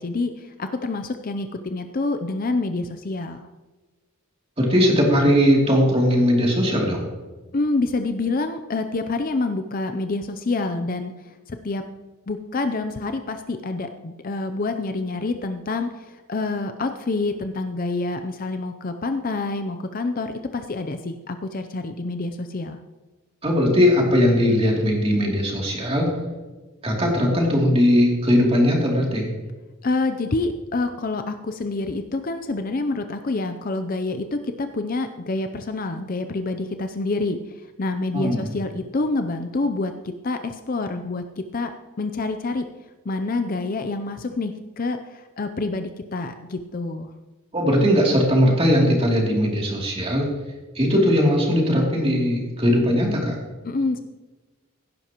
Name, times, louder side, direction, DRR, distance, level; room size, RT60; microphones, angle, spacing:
voice 1, 0.0-3.5 7.5-11.8 12.3-22.8 29.8-37.4 37.8-41.7 42.0-42.7 43.0-47.1 53.6-54.0, left 3 dB, 40° left, 8 dB, 0.5 m, -27 dB
voice 2, 4.6-7.1 23.4-26.1 26.8-29.3 38.1-38.4 47.5-50.3 50.7-53.4, equal, 25° right, -2 dB, 2.8 m, -19 dB
16.5 x 11.0 x 3.0 m, 1.2 s
head